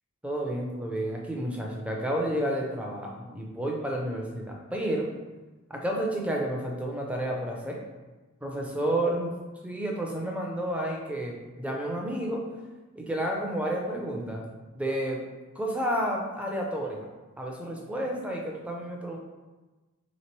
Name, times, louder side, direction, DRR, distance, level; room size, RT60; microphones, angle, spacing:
voice 1, 0.2-5.1 5.7-7.8 8.4-9.4 9.6-12.4 13.0-14.4 14.7-15.2 15.6-17.1 17.4-19.2, right 1 dB, 5° right, -1 dB, 0.4 m, -31 dB
3.3 x 3.0 x 4.4 m, 1.2 s
head